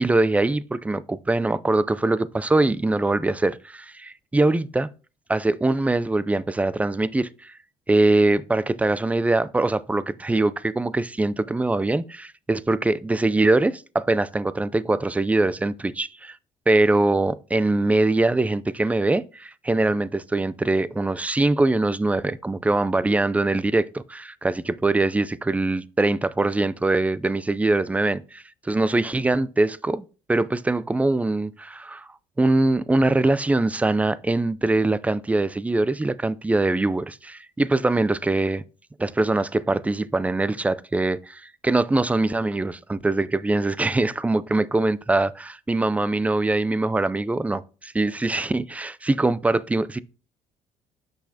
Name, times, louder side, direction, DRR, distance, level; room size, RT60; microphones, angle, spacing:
voice 1, 0.0-4.9 5.3-7.5 7.9-16.4 16.7-32.1 32.4-38.6 39.0-50.0, right 2 dB, 10° right, 0.4 m, -23 dB
6.5 x 5.9 x 2.8 m
supercardioid pair, 80°, 15 cm